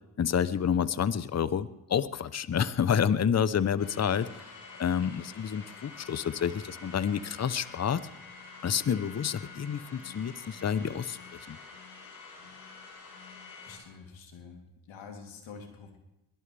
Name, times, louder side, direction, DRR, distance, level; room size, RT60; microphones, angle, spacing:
voice 1, 0.2-4.3 4.8-8.0 8.6-11.2 11.5-11.6, left 8 dB, 35° left, 16 dB, 0.9 m, -29 dB
sound 1, 3.8-13.8, left 4 dB, 90° left, 4.7 m, -48 dB
voice 2, 13.6-16.0, left 5 dB, 70° left, 2 dB, 3.3 m, -47 dB
22.0 x 18.0 x 3.4 m, 0.95 s
hypercardioid pair, 50°, 48 cm